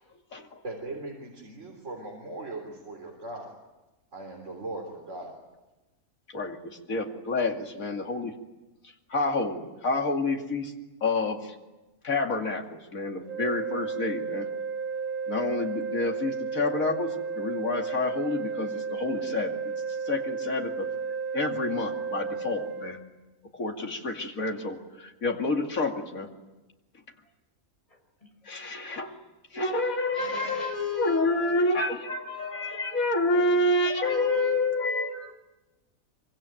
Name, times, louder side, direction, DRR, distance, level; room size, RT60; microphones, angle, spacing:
voice 1, 0.6-3.5 4.1-5.3 31.4-33.0 33.3-33.5 33.9-34.0, right 1 dB, 55° right, 0 dB, 4.0 m, -40 dB
voice 2, 6.3-8.3 8.8-10.7 11.0-11.5 12.0-14.5 15.3-19.6 20.0-20.9 21.3-23.0 23.5-26.3 28.4-29.2 29.5-35.3, left 2 dB, 70° left, 2 dB, 2.9 m, -29 dB
sound 1, 13.2-22.9, right 5 dB, 85° right, 5.3 m, -33 dB
voice 3, 27.9-29.1 29.5-31.4 32.3-33.1 33.8-34.7 35.1-35.3, left 4 dB, 25° left, 2 dB, 5.9 m, -37 dB
25.0 x 24.5 x 9.1 m, 1.1 s
omnidirectional pair, 1.5 m